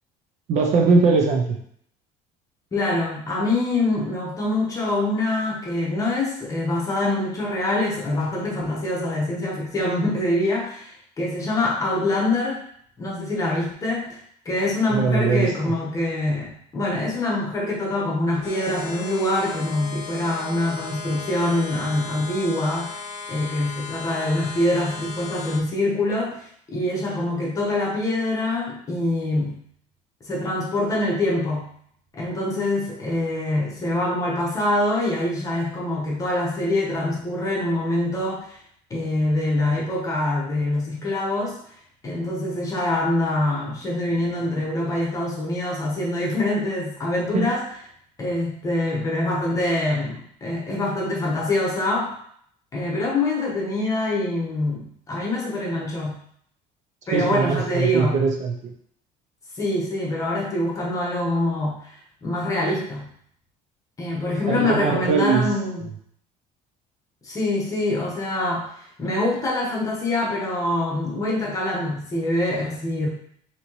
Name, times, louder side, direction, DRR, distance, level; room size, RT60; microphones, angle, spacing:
voice 1, 0.5-1.6 14.9-15.7 47.3-47.5 57.1-58.5 64.5-65.5 65.8-65.9, right 4 dB, 45° right, 2 dB, 0.5 m, -21 dB
voice 2, 2.7-12.6 13.0-14.2 14.4-22.9 23.3-29.6 30.2-31.7 32.1-38.6 38.9-41.6 42.0-47.7 48.2-52.1 52.7-56.2 57.1-58.2 59.6-61.9 62.2-63.1 64.0-65.8 67.2-68.7 69.0-73.1, left 1 dB, 20° left, -3 dB, 0.9 m, -25 dB
sound 1, 18.4-25.6, left 4 dB, 45° left, 0.8 m, -36 dB
3.9 x 2.8 x 3.0 m, 0.64 s
cardioid pair, 165°, 16 cm